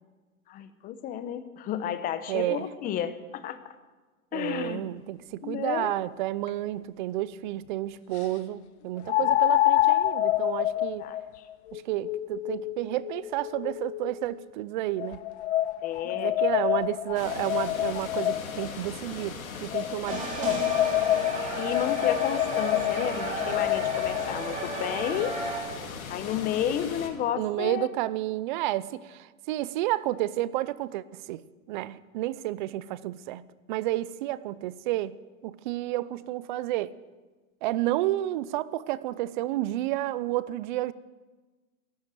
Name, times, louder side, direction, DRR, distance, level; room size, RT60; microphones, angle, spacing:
voice 1, 0.5-3.6 4.3-4.9 5.4-5.9 9.1-9.3 11.0-11.5 15.8-16.4 21.6-25.4 26.1-27.9, left 10 dB, 20° left, 0.9 m, -32 dB
voice 2, 2.3-2.7 4.3-11.1 11.7-15.2 16.0-20.7 27.4-31.4 31.7-35.2 35.4-36.9 37.6-40.9, right 15 dB, 35° right, 0.6 m, -31 dB
sound 1, 6.5-6.6 9.1-14.2 15.0-18.7 19.7-24.3, left 14 dB, 50° left, 0.8 m, -27 dB
sound 2, 17.1-27.1, left 5 dB, 75° left, 3.0 m, -39 dB
sound 3, 20.1-25.6, right 2 dB, 15° right, 3.8 m, -34 dB
14.5 x 12.0 x 7.7 m
hypercardioid pair, 140°, 42 cm